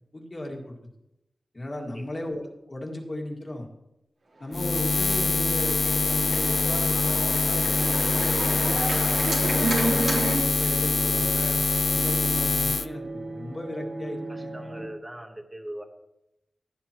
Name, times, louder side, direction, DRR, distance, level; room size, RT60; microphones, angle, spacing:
voice 1, 0.1-0.8 1.5-3.7 4.4-11.6 11.9-14.5, left 1 dB, 30° left, 1 dB, 2.0 m, -36 dB
Buzz, 4.5-12.9, left 3 dB, 45° left, 0.4 m, -24 dB
Organ, 4.5-10.4, right 2 dB, 75° right, 3.2 m, -31 dB
sound 1, 5.3-14.9, right 2 dB, 40° right, 1.8 m, -40 dB
voice 2, 14.3-15.8, right 1 dB, 20° right, 3 dB, 1.2 m, -40 dB
15.5 x 9.7 x 3.0 m, 0.88 s
wide cardioid pair, 100°, 0 cm